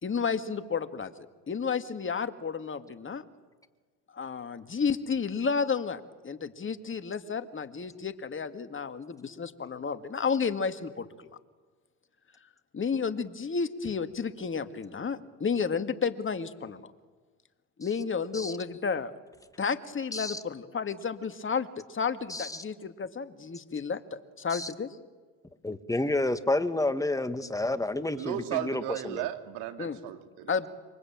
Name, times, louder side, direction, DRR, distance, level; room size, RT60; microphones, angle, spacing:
voice 1, 0.0-3.2 4.1-11.4 12.7-16.9 17.8-19.1 19.6-25.0 29.8-30.0 30.5-30.7, left 5 dB, 30° left, 9 dB, 2.1 m, -32 dB
voice 2, 22.3-22.6 24.5-24.7 25.6-29.3, left 2 dB, 10° left, 10 dB, 2.0 m, -30 dB
voice 3, 28.2-30.5, right 12 dB, 75° right, 8 dB, 2.5 m, -35 dB
27.0 x 24.0 x 8.9 m, 1.4 s
hypercardioid pair, 75°, 42 cm